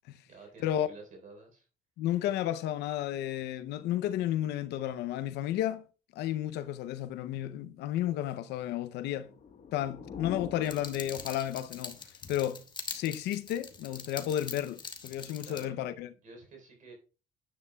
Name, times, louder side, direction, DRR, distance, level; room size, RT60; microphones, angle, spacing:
voice 1, 0.3-1.7 15.4-15.7 16.1-16.9, right 3 dB, 50° right, 3.8 m, -51 dB
voice 2, 2.0-5.8 6.1-9.3 9.7-12.6 12.9-16.1, left 12 dB, 80° left, 0.6 m, -32 dB
sound 1, 9.1-11.8, left 6 dB, 45° left, 1.3 m, -44 dB
sound 2, 10.6-15.6, left 4 dB, 25° left, 1.3 m, -43 dB
9.8 x 9.5 x 2.3 m
cardioid pair, 110°, 17 cm